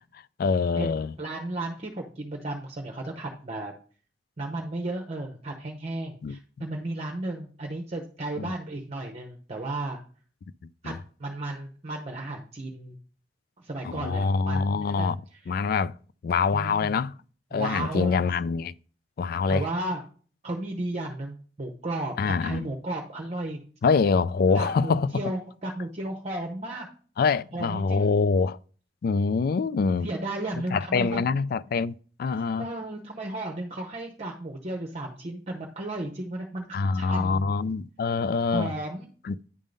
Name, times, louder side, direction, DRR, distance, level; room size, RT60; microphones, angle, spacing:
voice 1, 0.4-1.1 6.2-6.7 8.4-8.5 10.8-11.0 13.8-15.2 15.5-15.9 16.2-17.1 17.5-18.7 19.2-19.6 22.2-22.7 23.8-25.1 27.2-28.6 29.0-30.1 30.7-32.7 36.7-38.7 39.2-39.4, left 4 dB, 55° left, 0.3 m, -25 dB
voice 2, 1.2-3.7 4.4-10.0 10.8-10.9 11.2-13.0 13.6-15.6 16.5-17.0 17.5-18.2 19.5-20.0 20.4-23.6 24.5-26.9 27.5-28.1 30.0-31.2 32.6-37.6 38.5-39.1, right 2 dB, 35° right, 0.8 m, -34 dB
9.8 x 3.7 x 5.2 m
head